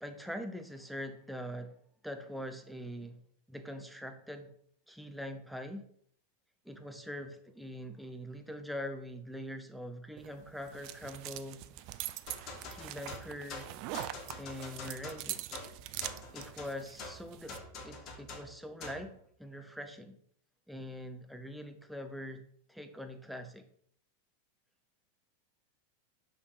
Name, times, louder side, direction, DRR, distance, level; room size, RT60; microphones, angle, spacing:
voice 1, 0.0-1.7 2.0-3.2 3.5-4.5 4.9-5.9 6.6-11.6 12.7-13.7 14.4-15.5 16.3-20.2 20.7-23.6, equal, ahead, 6 dB, 0.9 m, -43 dB
sound 1, 10.2-17.6, right 15 dB, 45° right, 0.4 m, -43 dB
sound 2, 12.3-19.1, left 3 dB, 35° left, 1.4 m, -46 dB
6.3 x 5.6 x 4.8 m, 0.64 s
figure-of-eight pair, 90°, 0 cm